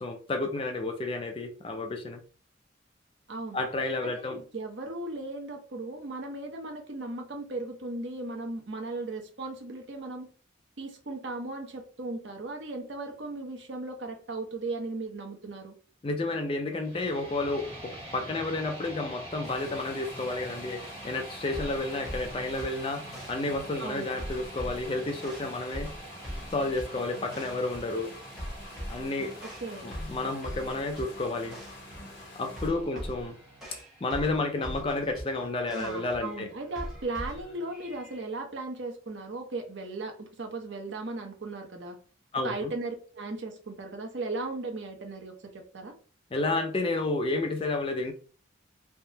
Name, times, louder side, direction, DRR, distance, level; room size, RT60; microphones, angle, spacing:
voice 1, 0.0-2.2 3.5-4.4 16.0-25.9 26.5-28.1 28.9-29.3 29.8-31.6 32.4-33.3 34.0-36.5 42.3-42.7 46.3-48.1, left 2 dB, 30° left, 0.4 m, -31 dB
voice 2, 3.3-3.6 4.0-10.3 10.8-15.8 23.8-24.1 29.4-29.9 35.7-42.0 42.4-46.0, right 2 dB, 70° right, 0.7 m, -37 dB
sound 1, 16.7-34.8, right 1 dB, 30° right, 1.0 m, -47 dB
sound 2, 19.4-32.7, left 2 dB, 65° left, 1.1 m, -48 dB
sound 3, 21.5-38.2, equal, ahead, 1.0 m, -42 dB
3.4 x 2.0 x 2.7 m
head